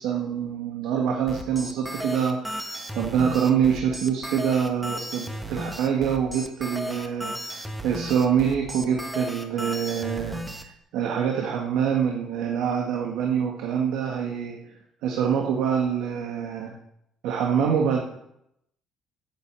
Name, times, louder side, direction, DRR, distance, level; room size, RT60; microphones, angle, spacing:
voice 1, 0.0-14.7 15.0-16.7 17.2-18.0, right 7 dB, 85° right, 1 dB, 1.8 m, -25 dB
sound 1, 1.3-10.6, equal, 10° right, 1.5 m, -35 dB
10.5 x 9.5 x 7.5 m, 0.80 s
cardioid pair, 125°, 0 cm